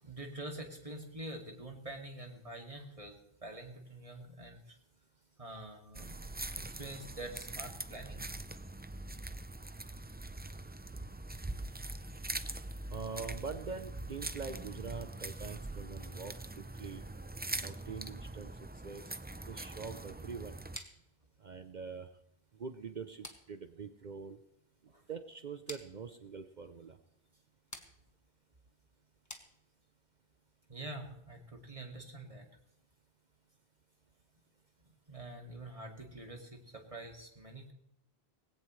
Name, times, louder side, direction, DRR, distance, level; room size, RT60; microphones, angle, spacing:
voice 1, 0.0-3.2 3.4-4.8 5.4-6.2 6.5-8.3 24.9-25.0 30.7-32.5 35.1-37.7, right 1 dB, 35° right, 2 dB, 2.5 m, -46 dB
sound 1, 5.9-20.8, right 2 dB, 15° right, 0.4 m, -43 dB
voice 2, 12.9-16.4 16.8-17.0 17.6-18.5 18.8-19.0 19.5-20.6 21.4-22.1 22.6-24.4 25.1-27.0, right 5 dB, 50° right, 9 dB, 0.8 m, -44 dB
sound 2, 20.7-30.1, left 1 dB, 15° left, 1.6 m, -54 dB
19.0 x 17.5 x 3.2 m, 0.76 s
omnidirectional pair, 1.1 m